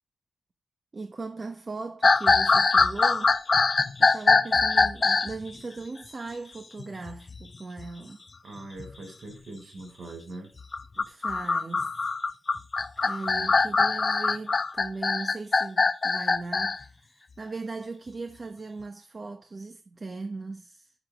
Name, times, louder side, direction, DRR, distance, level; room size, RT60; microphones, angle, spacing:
voice 1, 0.9-3.4 4.0-8.2 10.9-12.1 13.0-20.9, right 3 dB, 30° right, 1.2 m, -38 dB
sound 1, 2.0-5.3 6.8-7.4 7.8-7.9 8.6-8.9 10.6-16.8, left 4 dB, 30° left, 0.7 m, -23 dB
voice 2, 8.4-10.5 13.2-13.7, right 2 dB, 50° right, 5.6 m, -42 dB
11.0 x 8.7 x 5.2 m
wide cardioid pair, 145°, 0 cm